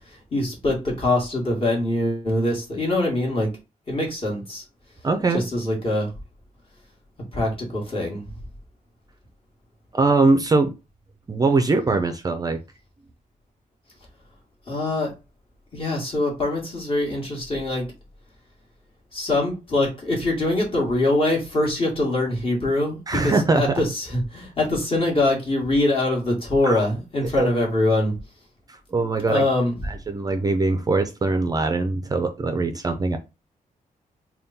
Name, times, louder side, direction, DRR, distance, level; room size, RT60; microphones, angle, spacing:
voice 1, 0.3-3.5 3.9-4.6 5.3-6.1 7.3-8.2 14.7-15.1 15.7-17.9 19.1-28.1 29.3-29.8, left 2 dB, 40° left, 1.8 m, -23 dB
voice 2, 5.0-5.4 9.9-10.7 11.3-12.6 23.1-23.6 26.6-26.8 27.3-27.5 28.7-29.4 29.8-33.2, right 3 dB, 25° right, 0.4 m, -22 dB
3.5 x 2.3 x 4.1 m
wide cardioid pair, 130°, 15 cm